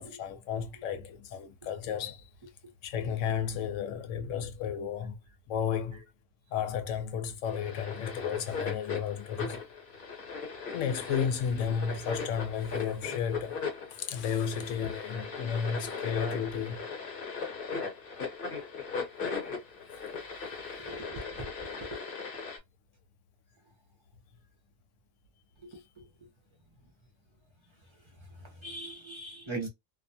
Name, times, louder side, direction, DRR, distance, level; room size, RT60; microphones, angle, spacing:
voice 1, 0.0-2.3 2.8-5.2 5.5-6.1 6.5-9.6 10.7-13.6 13.9-16.9, left 7 dB, 90° left, 0.9 m, -33 dB
sound 1, 7.5-22.6, left 5 dB, 50° left, 1.0 m, -38 dB
voice 2, 20.8-22.0 25.6-26.0 28.4-29.7, right 2 dB, 35° right, 0.5 m, -41 dB
2.3 x 2.2 x 2.6 m
omnidirectional pair, 1.2 m